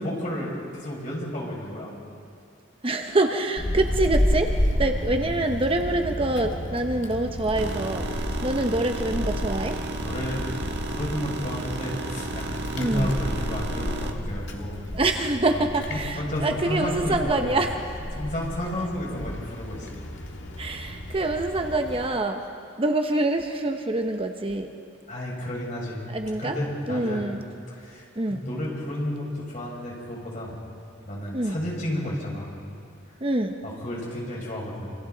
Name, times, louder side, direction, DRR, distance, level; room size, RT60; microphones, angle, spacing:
voice 1, 0.0-1.9 10.0-10.4 10.9-14.8 15.5-17.5 18.1-19.9 25.1-26.1 26.4-27.2 27.7-30.6 31.1-32.5 33.6-34.9, left 1 dB, 45° left, -4 dB, 6.3 m, -32 dB
voice 2, 2.8-4.5 4.8-9.8 12.8-13.1 14.9-17.8 20.6-22.4 22.8-24.7 26.1-26.6 26.9-27.4 28.2-28.4 31.3-31.5 33.2-33.6, right 2 dB, 30° right, 5 dB, 0.9 m, -25 dB
Wind, 3.6-22.1, equal, 70° left, 1.8 m, -31 dB
sound 1, 7.6-14.1, right 3 dB, 65° right, 1.5 m, -34 dB
27.0 x 26.5 x 4.0 m, 2.4 s
head